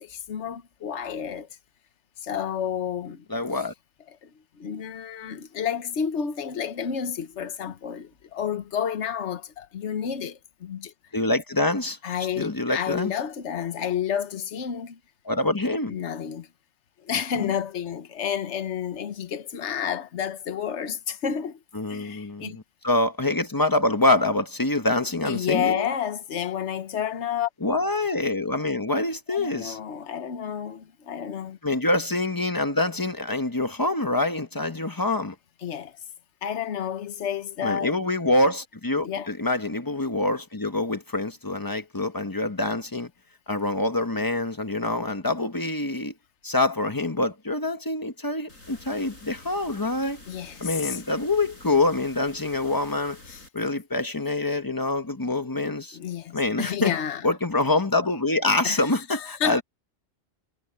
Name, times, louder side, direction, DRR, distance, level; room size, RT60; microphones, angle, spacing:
voice 1, 0.0-1.5 2.2-3.2 4.2-4.3 4.6-10.9 12.0-15.0 15.9-16.5 17.0-21.6 21.9-22.6 25.2-27.5 29.3-31.6 35.6-36.0 36.4-38.0 39.0-39.3 50.3-51.0 53.3-53.4 55.9-57.2 58.6-59.6, left 8 dB, 60° left, 1.4 m, -30 dB
voice 2, 3.3-3.7 11.1-12.0 12.4-13.1 15.2-15.9 17.3-17.5 21.7-25.9 27.6-29.8 31.6-35.3 37.6-43.1 43.5-46.1 46.4-50.2 50.6-53.2 53.5-56.0 56.3-56.9 57.2-59.6, left 2 dB, 15° left, 1.2 m, -25 dB
sound 1, 48.5-53.5, left 2 dB, 80° left, 7.0 m, -48 dB
omnidirectional pair, 1.4 m